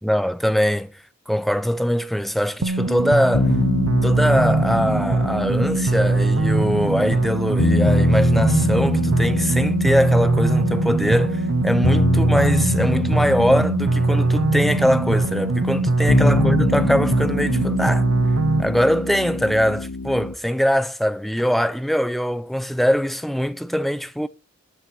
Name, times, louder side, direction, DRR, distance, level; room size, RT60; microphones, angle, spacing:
voice 1, 0.0-0.9 1.3-3.5 4.0-18.1 18.6-24.3, equal, ahead, 0.4 m, -22 dB
sound 1, 2.6-18.6, right 3 dB, 80° right, 0.8 m, -21 dB
sound 2, 3.3-20.3, left 2 dB, 70° left, 0.8 m, -25 dB
13.0 x 6.8 x 5.5 m
head